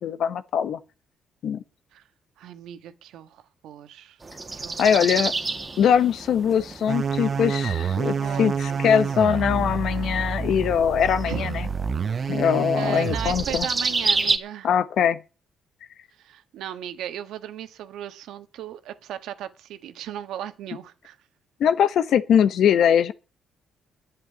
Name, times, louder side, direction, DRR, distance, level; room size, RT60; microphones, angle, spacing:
voice 1, 0.0-0.8 1.4-1.6 4.8-5.3 5.8-11.7 12.3-13.7 14.6-15.2 21.6-23.1, left 8 dB, 70° left, 1.0 m, -22 dB
voice 2, 2.4-4.2 4.5-5.2 7.9-8.8 11.2-11.5 12.8-14.7 16.2-21.2, right 11 dB, 85° right, 1.4 m, -36 dB
sound 1, 4.2-14.4, right 3 dB, 25° right, 1.8 m, -31 dB
sound 2, 6.9-13.6, right 6 dB, 45° right, 0.9 m, -28 dB
11.0 x 7.6 x 9.5 m
cardioid pair, 90°, 0 cm